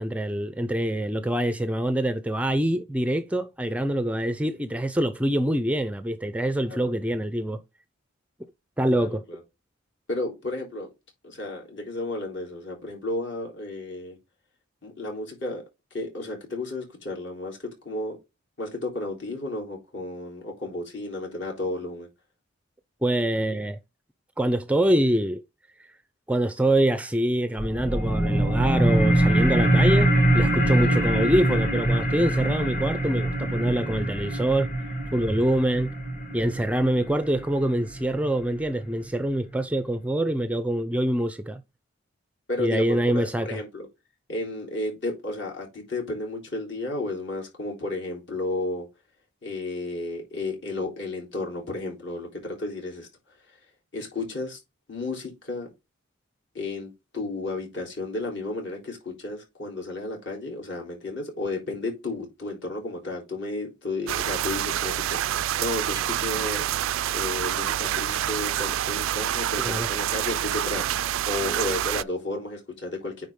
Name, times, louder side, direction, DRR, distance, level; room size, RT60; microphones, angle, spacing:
voice 1, 0.0-7.6 8.8-9.2 23.0-23.8 24.4-25.4 26.3-34.7 35.1-35.9 36.3-41.6 42.6-43.5 69.6-69.9, right 1 dB, 5° right, 0.4 m, -25 dB
voice 2, 8.9-9.4 10.1-10.9 11.2-14.2 14.8-15.6 15.9-18.2 18.6-22.1 30.7-30.9 42.5-43.9 44.3-48.9 49.4-53.1 53.9-54.6 54.9-55.7 56.5-66.6 67.1-70.8 71.3-73.3, left 2 dB, 60° left, 3.6 m, -33 dB
sound 1, 27.6-38.6, right 1 dB, 35° left, 1.7 m, -24 dB
sound 2, 64.1-72.0, right 12 dB, 75° right, 0.3 m, -27 dB
9.4 x 3.9 x 3.7 m
head